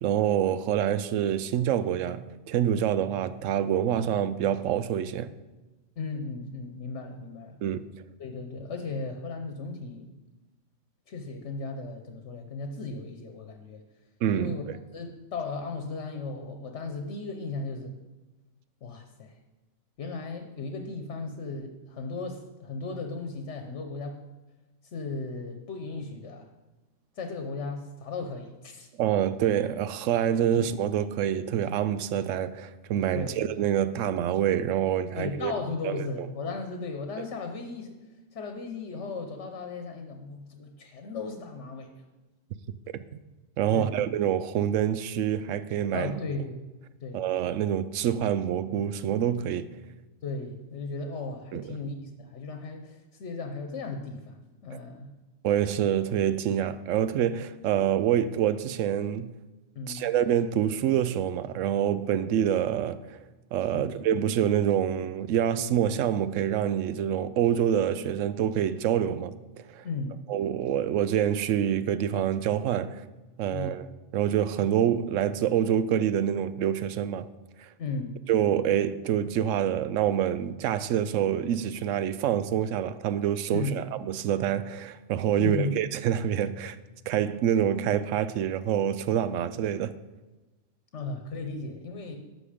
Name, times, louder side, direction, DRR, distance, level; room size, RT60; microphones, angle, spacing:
voice 1, 0.0-5.3 7.6-7.8 14.2-14.7 29.0-35.5 35.8-36.0 37.2-37.3 43.6-46.1 47.1-49.7 51.5-51.6 55.4-59.3 59.9-63.2 63.5-69.3 69.7-69.8 70.3-73.0 73.4-73.9 74.1-77.3 77.6-77.7 78.3-86.8 87.1-89.9, right 10 dB, 80° right, 0.9 m, -26 dB
voice 2, 6.0-7.6 8.2-10.1 11.1-13.8 14.3-14.6 14.9-18.0 18.8-19.4 20.0-24.2 24.9-26.5 27.2-28.9 33.1-33.4 35.1-38.0 38.3-42.0 43.7-44.0 45.9-46.6 47.0-47.2 50.2-55.1 59.7-60.1 63.7-63.9 69.8-70.2 73.5-73.8 77.8-78.2 83.5-83.8 85.4-85.7 90.9-92.2, left 3 dB, 65° left, 1.2 m, -36 dB
11.0 x 6.2 x 5.0 m
omnidirectional pair, 1.3 m